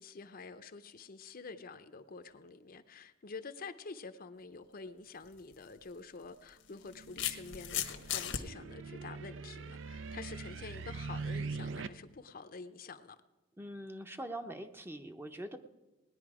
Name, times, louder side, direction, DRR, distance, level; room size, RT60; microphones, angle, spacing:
voice 1, 0.0-13.2, left 4 dB, 50° left, 0.6 m, -48 dB
sound 1, 5.2-5.4 6.5-8.4, left 10 dB, 80° left, 1.1 m, -36 dB
sound 2, 6.9-11.9, right 4 dB, 70° right, 0.6 m, -42 dB
voice 2, 13.6-15.6, right 1 dB, 10° right, 0.7 m, -43 dB
18.0 x 10.5 x 4.9 m
head